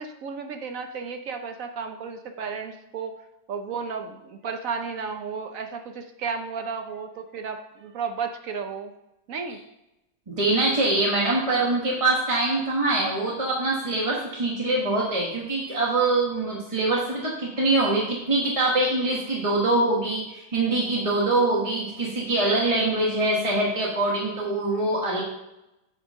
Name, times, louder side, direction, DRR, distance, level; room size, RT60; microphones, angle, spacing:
voice 1, 0.0-3.1 3.5-8.9 9.3-9.6, right 5 dB, 70° right, 6 dB, 0.8 m, -33 dB
voice 2, 10.3-25.2, right 2 dB, 20° right, -5 dB, 1.1 m, -24 dB
8.6 x 4.3 x 6.3 m, 0.92 s
omnidirectional pair, 2.1 m